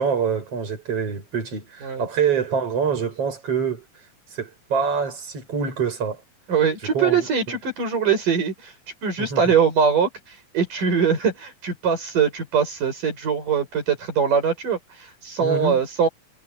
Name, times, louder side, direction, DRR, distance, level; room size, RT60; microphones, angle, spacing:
voice 1, 0.0-3.8 4.3-6.2 6.9-7.3 9.2-9.4 15.4-15.8, right 6 dB, 45° right, 7.4 m, -25 dB
voice 2, 6.5-8.7 9.0-16.1, right 6 dB, 75° right, 8.3 m, -22 dB
omnidirectional pair, 3.8 m